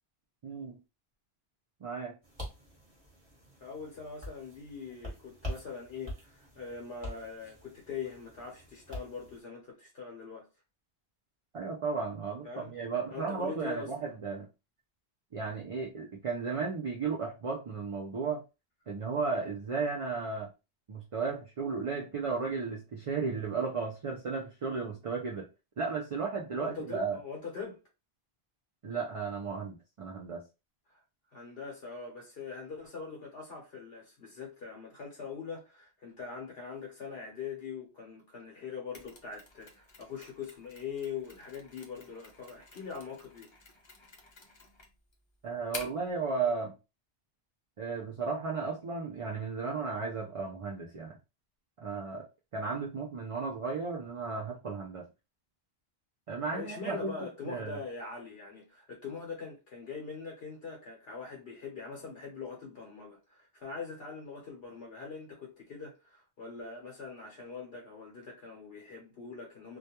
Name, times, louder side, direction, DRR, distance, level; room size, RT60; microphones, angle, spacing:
voice 1, 0.4-0.8 1.8-2.2 11.5-14.5 15.3-18.4 18.9-20.5 20.9-25.5 25.8-27.2 28.8-30.4 45.4-46.7 47.8-51.2 51.8-52.2 52.5-55.1 56.3-57.2 57.5-57.8, right 4 dB, 50° right, 0.4 m, -34 dB
sound 1, 2.2-9.4, equal, 25° right, 1.1 m, -45 dB
voice 2, 3.6-10.5 12.4-12.7 13.1-14.1 26.6-27.8 31.3-43.5 56.5-69.8, left 5 dB, 65° left, 0.9 m, -42 dB
Mechanisms, 38.9-46.1, left 3 dB, 35° left, 0.5 m, -50 dB
2.3 x 2.2 x 2.7 m
omnidirectional pair, 1.1 m